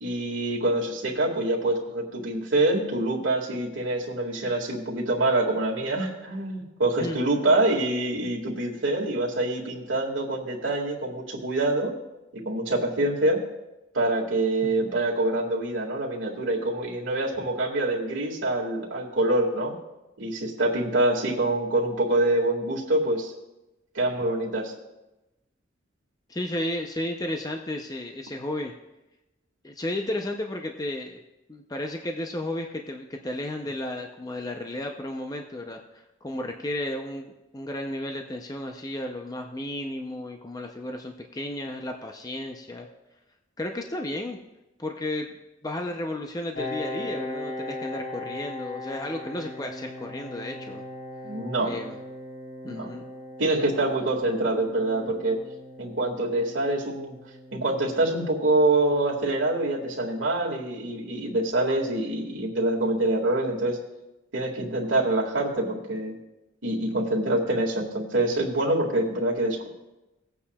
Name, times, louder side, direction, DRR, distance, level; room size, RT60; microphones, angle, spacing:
voice 1, 0.0-11.9 12.5-13.4 13.9-19.7 20.2-23.3 23.9-24.7 51.2-51.7 52.6-52.9 53.4-55.4 55.8-57.2 57.5-63.8 64.3-66.2 66.6-69.7, right 2 dB, 75° right, -3 dB, 1.9 m, -25 dB
voice 2, 26.3-28.7 29.6-31.2 31.5-42.9 43.6-44.4 44.8-45.3 45.6-50.8 51.6-52.0 52.6-53.1, left 1 dB, 20° left, 3 dB, 0.6 m, -33 dB
Piano, 46.5-61.9, left 1 dB, 85° left, 2.5 m, -40 dB
18.0 x 8.5 x 2.3 m, 0.98 s
head